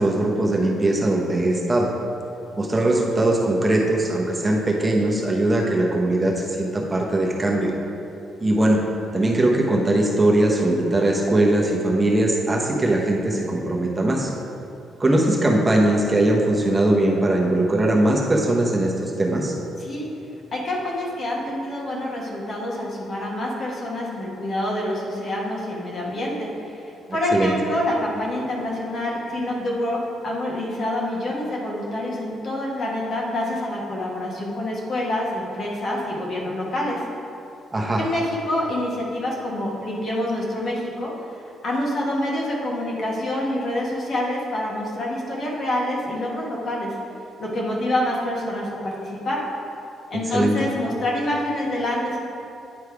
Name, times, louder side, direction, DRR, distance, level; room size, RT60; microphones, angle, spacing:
voice 1, 0.0-1.9 2.6-7.7 8.4-8.8 9.1-14.3 15.0-19.5 27.3-27.5 37.7-38.0 50.3-50.5, right 1 dB, 20° right, -1 dB, 0.9 m, -20 dB
voice 2, 19.8-20.1 20.5-37.0 37.9-41.1 41.6-46.9 47.4-49.4 50.1-52.2, left 1 dB, 50° left, -3 dB, 1.5 m, -27 dB
9.5 x 3.3 x 4.7 m, 2.8 s
cardioid pair, 90°, 0 cm